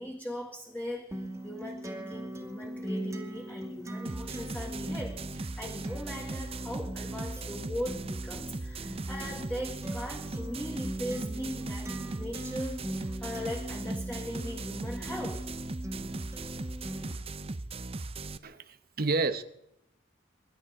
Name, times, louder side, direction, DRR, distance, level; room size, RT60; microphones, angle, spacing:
voice 1, 0.0-15.5, equal, 10° left, 1 dB, 1.8 m, -39 dB
Acoustic guitar, 1.1-17.1, right 1 dB, 15° right, 2.5 m, -40 dB
sound 1, 4.1-18.4, right 2 dB, 30° right, 0.7 m, -38 dB
voice 2, 18.4-19.4, right 3 dB, 50° right, 10 dB, 0.9 m, -30 dB
25.0 x 11.5 x 4.8 m, 0.79 s
head